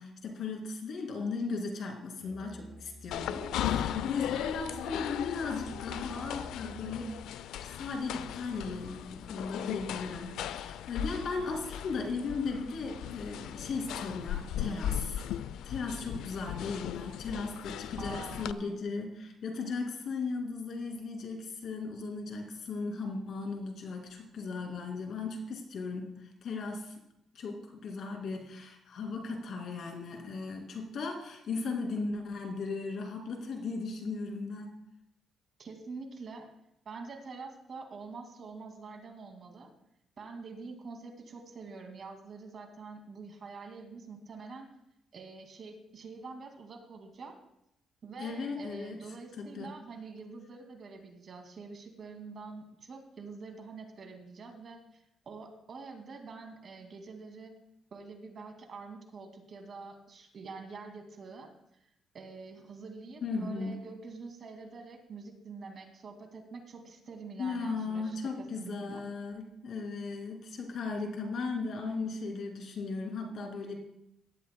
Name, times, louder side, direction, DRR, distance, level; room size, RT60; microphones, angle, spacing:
voice 1, 0.0-7.1 7.6-15.2 15.6-26.9 27.3-34.7 48.2-49.0 49.4-49.7 63.2-63.8 67.4-73.8, left 4 dB, 65° left, 2 dB, 2.4 m, -37 dB
Musical instrument, 2.2-7.3, equal, 45° left, 2.7 m, -51 dB
sound 1, 3.1-18.5, left 10 dB, 85° left, 0.4 m, -37 dB
voice 2, 18.0-18.8 35.6-36.5 36.9-39.7 40.2-44.7 45.1-47.3 48.0-57.5 57.9-61.5 62.1-68.2 68.6-69.0, right 4 dB, 50° right, 4 dB, 2.1 m, -46 dB
17.5 x 12.0 x 2.2 m, 0.81 s
cardioid pair, 90°, 0 cm